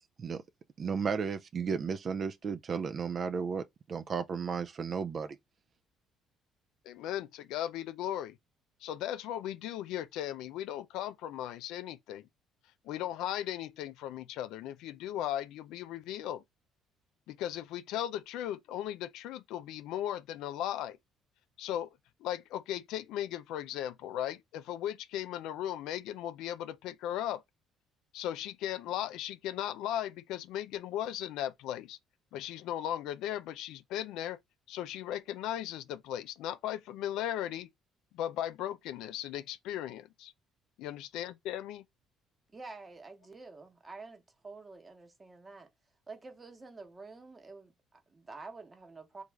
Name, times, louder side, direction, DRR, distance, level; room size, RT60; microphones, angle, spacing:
voice 1, 0.8-5.4, right 6 dB, 45° right, 0.3 m, -34 dB
voice 2, 6.9-8.4 8.8-12.3 12.8-16.4 17.3-21.0 21.6-21.9 22.2-27.4 28.1-32.0 32.3-34.4 34.7-37.7 38.1-40.3 40.8-41.8, left 11 dB, 80° left, 0.3 m, -37 dB
voice 3, 42.5-45.7 46.1-49.2, right 3 dB, 25° right, 1.0 m, -48 dB
3.1 x 2.4 x 3.4 m
cardioid pair, 100°, 0 cm